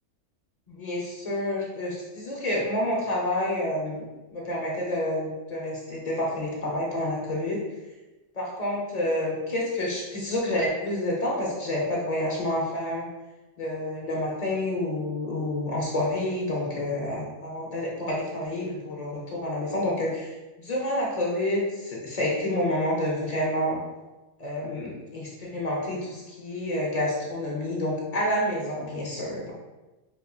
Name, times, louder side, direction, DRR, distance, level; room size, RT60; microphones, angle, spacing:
voice 1, 0.7-7.6 8.3-13.1 13.6-23.8 24.4-29.5, left 1 dB, 40° left, -4 dB, 0.6 m, -29 dB
4.4 x 2.7 x 2.3 m, 1.1 s
omnidirectional pair, 1.5 m